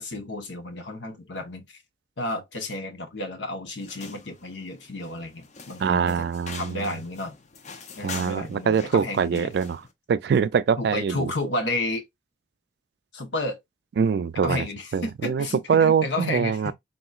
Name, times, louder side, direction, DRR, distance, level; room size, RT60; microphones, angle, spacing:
voice 1, 0.0-1.8 2.2-7.4 8.0-9.5 10.8-12.0 13.1-13.6 14.4-16.7, left 2 dB, 90° left, 0.9 m, -32 dB
sound 1, 3.8-9.9, left 5 dB, 40° left, 0.5 m, -44 dB
voice 2, 5.8-6.8 8.0-9.8 10.1-11.3 14.0-14.7 14.9-16.7, right 6 dB, 65° right, 0.3 m, -23 dB
3.8 x 2.8 x 2.3 m
head